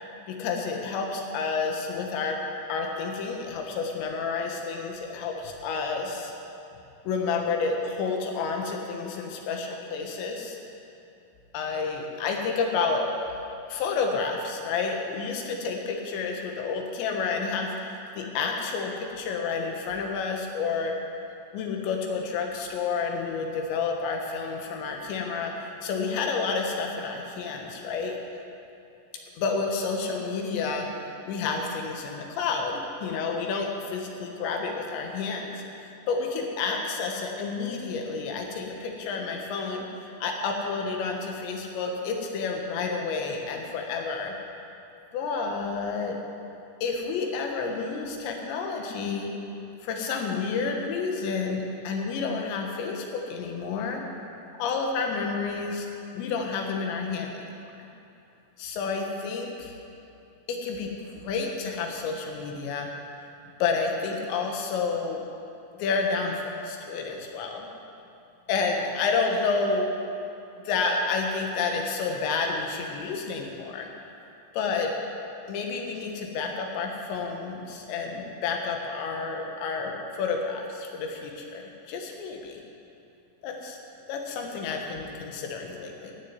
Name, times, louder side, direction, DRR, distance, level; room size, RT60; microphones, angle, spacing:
voice 1, 0.3-2.4 2.7-6.3 7.1-10.6 11.5-13.1 13.7-21.0 21.5-28.2 29.4-30.9 31.3-44.3 45.1-46.2 46.8-49.3 49.8-54.0 54.6-55.9 56.1-57.5 58.6-59.7 60.5-62.9 63.6-65.2 65.7-67.7 68.5-69.9 70.7-73.9 74.5-74.9 75.5-82.6 83.4-83.8 84.1-86.1, left 4 dB, 90° left, 2 dB, 3.7 m, -30 dB
14.0 x 6.8 x 9.5 m, 2.7 s
omnidirectional pair, 5.0 m